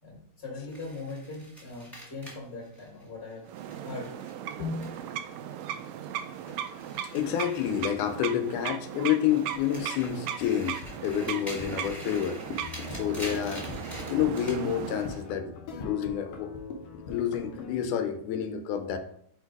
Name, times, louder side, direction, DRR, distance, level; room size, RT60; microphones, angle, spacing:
voice 1, 0.0-4.1, left 3 dB, 25° left, -3 dB, 1.9 m, -41 dB
sound 1, 0.7-5.3 5.6-8.5 8.9-14.6, equal, ahead, 1.4 m, -46 dB
sound 2, 3.5-15.3, right 10 dB, 80° right, 1.6 m, -37 dB
voice 2, 4.6-5.0 7.1-12.4 12.9-13.7 14.1-15.5 15.8-16.5 17.1-19.0, left 9 dB, 85° left, 8 dB, 2.1 m, -29 dB
sound 3, 9.5-17.9, left 4 dB, 70° left, 1.6 m, -42 dB
4.7 x 4.5 x 4.7 m, 0.67 s
omnidirectional pair, 3.4 m